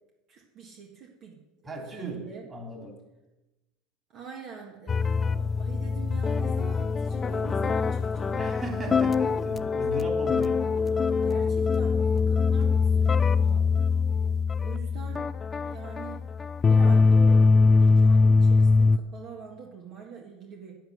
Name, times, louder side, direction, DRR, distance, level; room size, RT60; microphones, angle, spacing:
voice 1, 0.3-2.5 4.1-8.9 11.1-13.7 14.6-16.2 16.7-20.8, right 6 dB, 50° right, 0 dB, 1.7 m, -45 dB
voice 2, 1.6-3.0 8.4-10.8, equal, 25° right, 2 dB, 2.9 m, -37 dB
sound 1, 4.9-19.0, left 4 dB, 25° left, 0.4 m, -23 dB
8.8 x 7.8 x 6.6 m, 1.0 s
hypercardioid pair, 90°, 0 cm